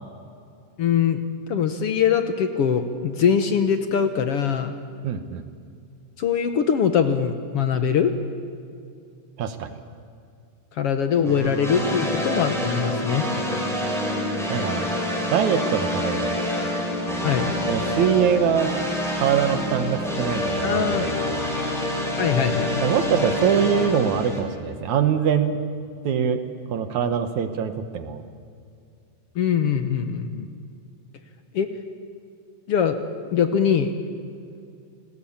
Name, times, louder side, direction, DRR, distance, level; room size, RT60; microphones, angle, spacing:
voice 1, 0.8-1.2 1.5-4.7 6.2-8.1 10.7-13.3 17.2-17.5 20.6-21.1 22.2-22.7 29.3-30.5 31.5-31.7 32.7-33.0 33.3-33.9, left 7 dB, 65° left, 8 dB, 1.5 m, -22 dB
voice 2, 5.0-5.4 9.4-9.8 14.5-14.9 15.3-16.4 17.7-18.7 19.2-21.4 22.8-25.6 26.0-26.4 26.7-28.2, right 8 dB, 65° right, 9 dB, 2.3 m, -23 dB
sound 1, 11.2-24.4, left 1 dB, ahead, 5.2 m, -27 dB
29.0 x 19.5 x 8.7 m, 2.4 s
omnidirectional pair, 4.1 m